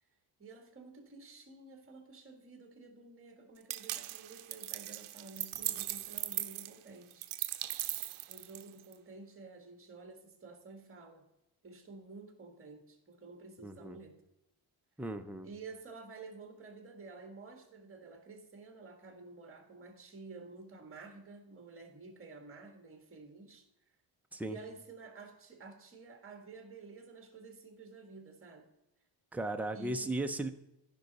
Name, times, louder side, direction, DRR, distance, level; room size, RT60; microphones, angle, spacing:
voice 1, 0.4-7.2 8.3-11.2 11.6-14.2 15.4-23.6 24.4-28.7 29.7-30.2, right 4 dB, 25° right, 4 dB, 1.6 m, -51 dB
sound 1, 3.7-8.9, right 14 dB, 75° right, 0.6 m, -39 dB
voice 2, 13.6-14.0 15.0-15.5 24.3-24.6 29.3-30.5, right 2 dB, 5° right, 6 dB, 0.3 m, -36 dB
15.0 x 5.4 x 4.0 m, 0.95 s
wide cardioid pair, 165°, 49 cm